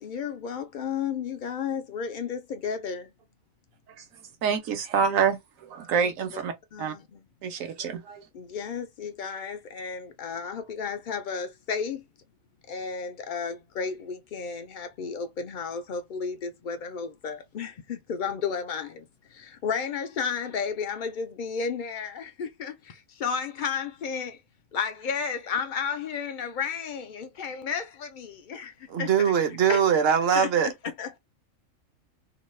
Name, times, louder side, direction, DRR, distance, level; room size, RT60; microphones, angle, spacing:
voice 1, 0.0-3.1 6.7-7.2 8.3-12.0 12.7-19.0 19.3-24.4 24.7-28.7 29.0-29.3 29.7-29.8 30.4-30.7 31.0-31.2, left 6 dB, 80° left, 0.4 m, -33 dB
voice 2, 4.4-6.5 6.8-6.9 7.4-8.2, right 6 dB, 80° right, 1.2 m, -27 dB
voice 3, 28.9-30.7, right 7 dB, 55° right, 0.8 m, -22 dB
2.9 x 2.3 x 3.1 m
omnidirectional pair, 1.4 m